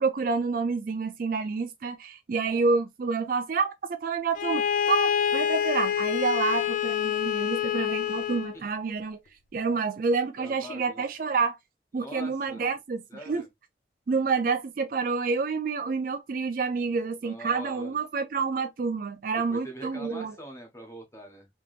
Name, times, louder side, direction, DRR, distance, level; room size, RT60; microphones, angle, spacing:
voice 1, 0.0-9.2 9.5-11.6 11.9-13.4 14.1-20.3, right 4 dB, 50° right, 0.4 m, -28 dB
Bowed string instrument, 4.3-8.6, left 9 dB, 45° left, 0.3 m, -27 dB
voice 2, 10.4-11.0 11.9-12.6 13.1-13.5 17.2-18.0 19.5-21.5, equal, 15° left, 1.0 m, -43 dB
3.5 x 2.9 x 2.4 m
head